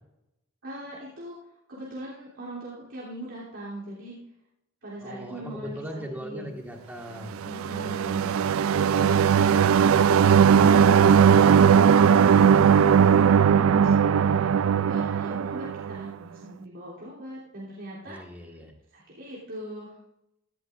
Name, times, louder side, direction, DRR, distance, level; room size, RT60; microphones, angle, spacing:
voice 1, 0.6-1.4 1.7-4.2 4.8-6.5 7.4-9.4 11.4-18.2 18.9-19.9, right 1 dB, 65° right, -9 dB, 3.2 m, -41 dB
voice 2, 5.0-7.4 18.1-18.7, equal, 10° right, 1 dB, 1.6 m, -39 dB
sound 1, 7.4-16.1, right 7 dB, 85° right, 0.4 m, -19 dB
16.0 x 13.0 x 2.5 m, 0.87 s
head